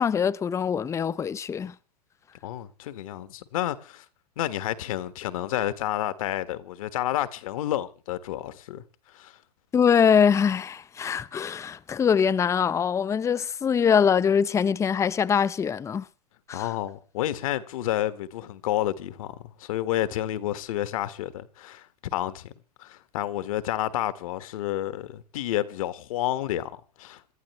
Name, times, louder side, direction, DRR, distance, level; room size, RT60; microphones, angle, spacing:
voice 1, 0.0-1.7 9.7-16.1 16.5-16.7, left 7 dB, 15° left, 0.7 m, -23 dB
voice 2, 2.4-4.0 4.4-8.8 9.1-9.4 16.5-22.5 22.8-27.3, left 13 dB, 60° left, 1.5 m, -30 dB
27.5 x 12.5 x 3.2 m
hypercardioid pair, 105°, 20 cm